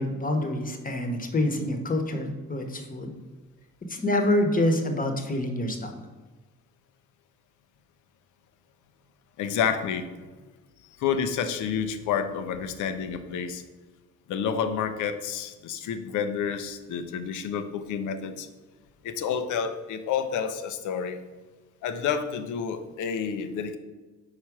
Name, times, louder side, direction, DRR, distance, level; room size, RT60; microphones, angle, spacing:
voice 1, 0.0-3.1 3.9-6.0, left 1 dB, 30° left, 5 dB, 1.1 m, -26 dB
voice 2, 9.4-10.1 11.0-13.6 14.3-18.5 19.0-21.2 21.8-23.8, left 7 dB, 80° left, 9 dB, 0.7 m, -29 dB
4.9 x 4.4 x 5.9 m, 1.3 s
cardioid pair, 90°, 30 cm